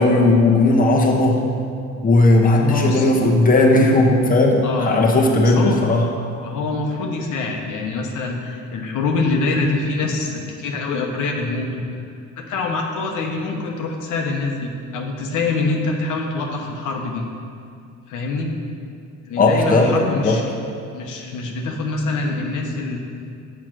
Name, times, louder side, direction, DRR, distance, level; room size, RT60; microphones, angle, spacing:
voice 1, 0.0-1.4 2.0-6.0 19.4-20.4, left 2 dB, 30° left, -1 dB, 1.0 m, -16 dB
voice 2, 2.6-3.1 4.6-5.0 5.4-5.8 6.4-11.8 12.4-17.2 18.1-18.5 19.2-20.5 20.9-23.0, left 3 dB, 85° left, 1 dB, 1.0 m, -25 dB
6.7 x 4.7 x 6.1 m, 2.3 s
cardioid pair, 90°, 30 cm